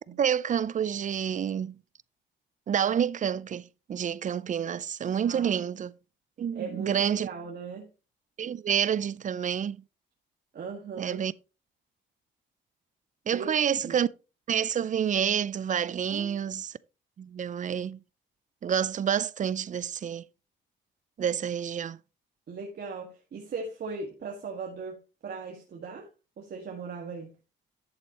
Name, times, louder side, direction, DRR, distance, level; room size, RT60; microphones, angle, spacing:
voice 1, 0.2-1.8 2.7-5.9 6.4-7.3 8.4-9.8 11.0-11.3 13.3-14.1 14.5-16.7 17.2-18.0 18.6-20.2 21.2-22.0, right 8 dB, 40° right, 0.4 m, -28 dB
voice 2, 5.2-5.7 6.5-7.9 10.5-11.2 13.3-13.5 13.8-14.0 16.1-16.5 22.5-26.1 26.4-27.3, right 4 dB, 55° right, 1.8 m, -39 dB
11.5 x 7.8 x 2.9 m
cardioid pair, 90°, 20 cm